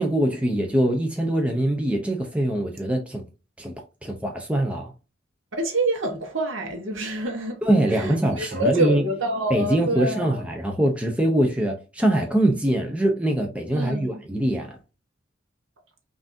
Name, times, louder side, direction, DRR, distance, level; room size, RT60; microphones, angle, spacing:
voice 1, 0.0-3.2 3.6-3.7 4.0-4.9 7.6-9.0 9.5-14.8, right 1 dB, 5° right, 0.5 m, -23 dB
voice 2, 5.6-7.6 7.9-10.4 13.7-14.2, right 1 dB, 80° right, 1.0 m, -27 dB
sound 1, 8.5-9.1, right 2 dB, 45° right, 1.3 m, -45 dB
5.7 x 2.6 x 2.5 m
head